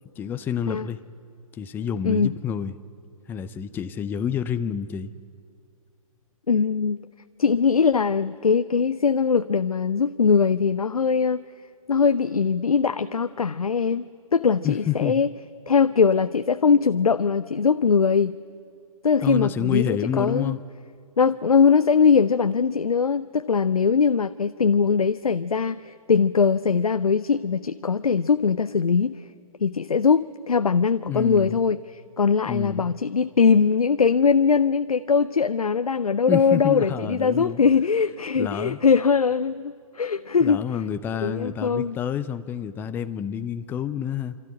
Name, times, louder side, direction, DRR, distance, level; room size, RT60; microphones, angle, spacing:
voice 1, 0.2-1.0 1.5-2.7 3.3-5.1 14.6-15.2 19.2-20.6 31.1-31.6 32.5-33.0 36.3-37.6 38.4-38.8 40.4-44.4, left 8 dB, 10° left, 0.5 m, -28 dB
voice 2, 6.5-7.0 7.4-11.4 11.9-14.0 14.3-15.3 15.7-18.4 19.0-20.6 21.2-29.3 29.6-40.6 41.2-42.0, left 5 dB, 80° left, 0.5 m, -21 dB
28.5 x 13.0 x 9.9 m
figure-of-eight pair, 125°, 18 cm